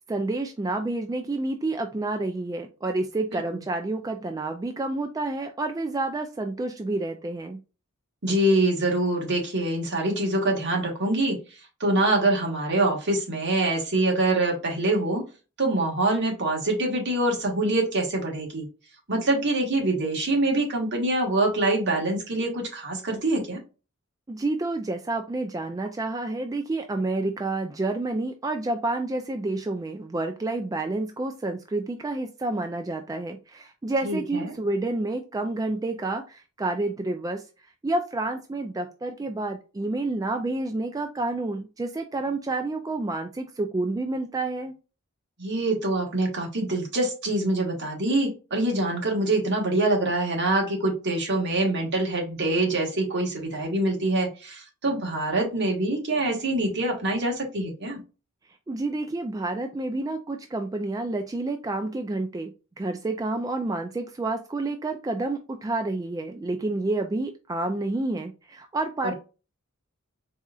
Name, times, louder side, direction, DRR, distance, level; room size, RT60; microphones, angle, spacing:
voice 1, 0.1-7.6 24.3-37.4 37.8-44.7 58.7-62.5 62.8-69.1, right 2 dB, 15° right, 5 dB, 0.3 m, -29 dB
voice 2, 8.2-11.4 11.8-15.2 15.6-18.7 19.1-23.6 34.0-34.5 45.4-58.0 69.0-69.1, right 2 dB, 55° right, 0 dB, 1.5 m, -25 dB
4.2 x 3.6 x 2.3 m, 0.33 s
head